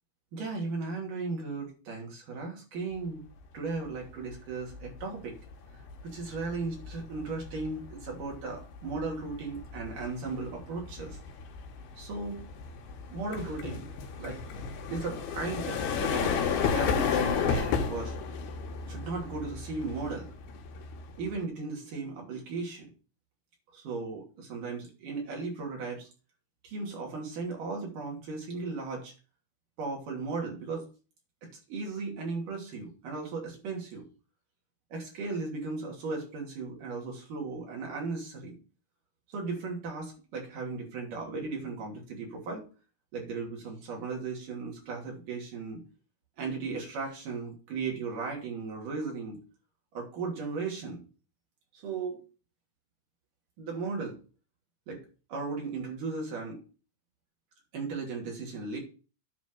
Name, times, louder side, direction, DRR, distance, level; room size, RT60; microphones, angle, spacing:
voice 1, 0.3-3.2 3.5-5.4 6.0-11.2 12.0-12.4 13.1-13.9 14.2-14.4 14.9-16.4 16.7-18.2 18.9-20.3 21.2-22.9 23.7-26.1 26.6-29.1 29.8-30.9 31.4-34.1 34.9-38.5 39.3-42.6 43.1-45.8 46.4-49.4 49.9-51.0 51.7-52.2 53.6-54.2 54.9-55.0 55.3-56.6 57.7-58.8, right 4 dB, 55° right, -1 dB, 4.2 m, -36 dB
sound 1, 4.0-4.3 4.7-21.4, left 6 dB, 75° left, 3.1 m, -33 dB
10.5 x 4.2 x 6.8 m, 0.35 s
omnidirectional pair, 4.7 m